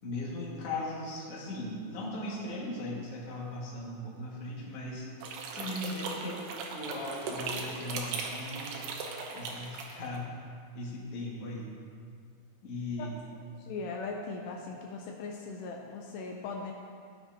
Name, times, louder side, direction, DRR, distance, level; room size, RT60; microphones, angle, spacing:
voice 1, 0.0-5.1 5.5-8.8 9.3-10.4 10.7-11.7 12.6-13.2, left 2 dB, 45° left, -5 dB, 1.9 m, -38 dB
sound 1, 5.2-10.2, right 4 dB, 75° right, 2.8 m, -38 dB
voice 2, 13.6-16.7, left 4 dB, 80° left, 1 dB, 2.7 m, -39 dB
15.5 x 8.1 x 2.9 m, 2.2 s
omnidirectional pair, 5.0 m